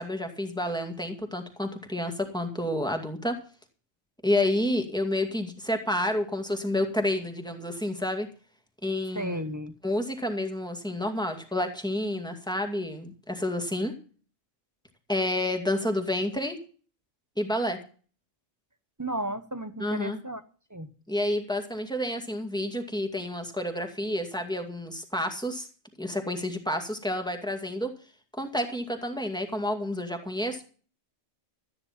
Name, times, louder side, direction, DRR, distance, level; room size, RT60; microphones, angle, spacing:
voice 1, 0.0-3.4 4.2-8.3 8.8-9.5 9.8-13.9 15.1-16.6 17.4-17.8 19.8-20.2 21.1-25.7 26.0-27.9 28.3-30.6, left 1 dB, 5° left, 2.1 m, -29 dB
voice 2, 9.1-9.8 19.0-20.4 20.7-20.9, right 1 dB, 15° right, 0.8 m, -34 dB
14.0 x 9.7 x 5.8 m
omnidirectional pair, 1.3 m